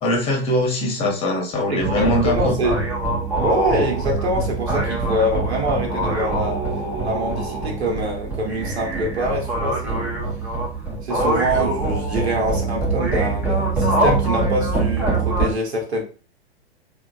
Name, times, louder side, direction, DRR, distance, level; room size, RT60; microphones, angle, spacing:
voice 1, 0.0-2.6, left 1 dB, 15° left, 0.9 m, -21 dB
voice 2, 1.7-2.8 3.4-6.6 7.0-10.2 11.0-16.0, right 1 dB, 70° right, 1.0 m, -25 dB
sound 1, 1.8-15.5, right 2 dB, 5° right, 0.4 m, -23 dB
2.9 x 2.2 x 2.5 m
figure-of-eight pair, 110°, 33 cm